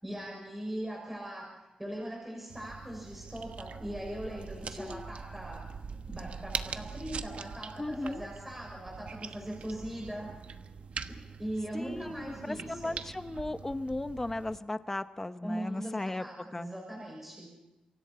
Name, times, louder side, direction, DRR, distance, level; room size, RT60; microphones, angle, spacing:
voice 1, 0.0-5.7 6.1-10.4 11.4-13.0 15.4-17.5, right 1 dB, 10° right, -1 dB, 6.2 m, -40 dB
sound 1, 2.5-14.6, right 5 dB, 60° right, 1.1 m, -43 dB
sound 2, 6.3-7.7 8.1-8.2 8.6-8.7 8.9-10.8 11.1-11.5 11.9-14.0, right 4 dB, 85° right, 7.2 m, -55 dB
voice 2, 7.8-8.2 11.7-16.2 16.5-16.7, left 2 dB, 15° left, 10 dB, 0.9 m, -36 dB
28.0 x 24.0 x 4.3 m, 1.0 s
wide cardioid pair, 160°, 2 cm